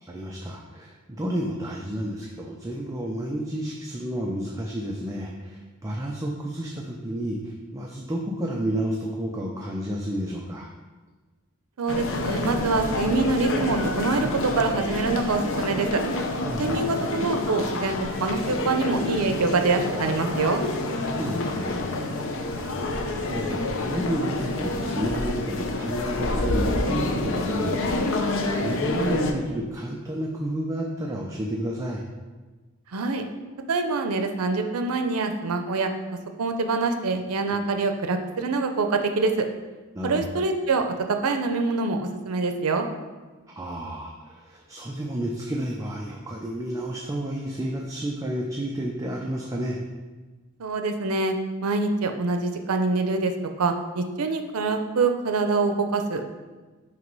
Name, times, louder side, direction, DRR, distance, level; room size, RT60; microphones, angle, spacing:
voice 1, 0.0-10.7 16.4-16.8 21.0-21.9 22.6-32.0 39.9-40.3 43.5-49.8, right 1 dB, 15° right, -1 dB, 0.4 m, -31 dB
voice 2, 11.8-16.0 16.6-20.6 32.9-33.2 33.7-35.9 36.4-39.4 40.0-42.9 50.6-51.3 51.6-53.3 53.6-56.2, right 3 dB, 85° right, 6 dB, 0.6 m, -25 dB
sound 1, 11.9-29.3, left 2 dB, 60° left, 0.6 m, -28 dB
6.2 x 2.9 x 5.3 m, 1.3 s
head